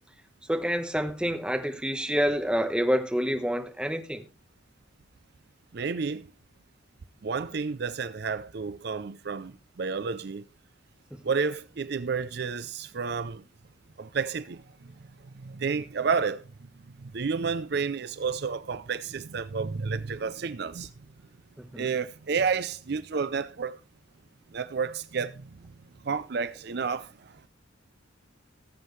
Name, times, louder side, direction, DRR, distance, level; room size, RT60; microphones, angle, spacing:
voice 1, 0.5-4.2 21.6-21.9, equal, 5° right, 1.1 m, -28 dB
voice 2, 5.7-6.3 7.2-10.4 11.2-13.4 14.0-14.9 15.3-16.4 17.0-20.9 21.7-23.8 24.5-25.7 26.0-27.5, right 5 dB, 55° right, 0.5 m, -31 dB
18.5 x 7.4 x 3.2 m
head